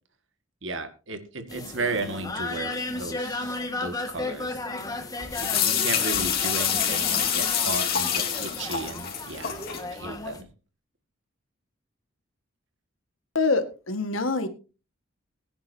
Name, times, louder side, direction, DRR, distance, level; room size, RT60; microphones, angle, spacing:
voice 1, 0.6-4.6 5.4-9.6 9.9-10.5, right 3 dB, 65° right, 8 dB, 1.9 m, -34 dB
sound 1, 1.5-10.4, left 2 dB, 20° left, 1.6 m, -34 dB
sound 2, 5.3-9.8, left 9 dB, 50° left, 3.5 m, -26 dB
voice 2, 13.4-14.5, left 3 dB, 85° left, 8 dB, 1.7 m, -25 dB
20.5 x 10.0 x 2.8 m, 0.33 s
head